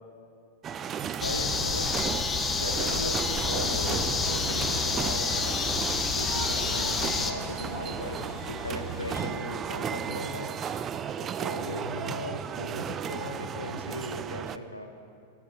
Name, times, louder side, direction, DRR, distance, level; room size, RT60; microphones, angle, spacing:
sound 1, 0.6-14.6, right 8 dB, 25° right, 0.3 m, -35 dB
voice 1, 1.0-1.9 2.6-5.6 6.1-10.5 11.2-14.9, left 1 dB, 85° left, 5 dB, 0.8 m, -37 dB
sound 2, 1.2-7.3, left 5 dB, 20° left, 0.7 m, -29 dB
sound 3, 3.6-9.3, left 1 dB, ahead, 1.9 m, -40 dB
17.0 x 8.1 x 4.5 m, 2.4 s
figure-of-eight pair, 90°, 0 cm